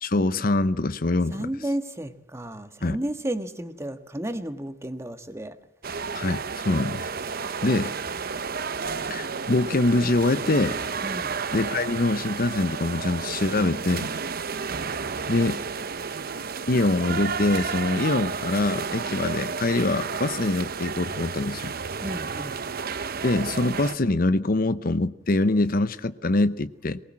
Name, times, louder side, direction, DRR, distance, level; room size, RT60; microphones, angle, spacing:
voice 1, 0.0-1.5 2.8-3.0 6.1-7.1 7.6-7.9 9.1-10.8 11.5-14.1 15.3-15.6 16.7-21.7 23.2-27.0, left 2 dB, 50° left, 13 dB, 0.8 m, -24 dB
voice 2, 1.3-5.5 11.0-11.3 22.0-22.6, right 1 dB, 15° right, 8 dB, 1.6 m, -32 dB
sound 1, 5.8-24.0, right 5 dB, 50° right, 0.9 m, -32 dB
23.5 x 20.0 x 7.5 m, 0.78 s
head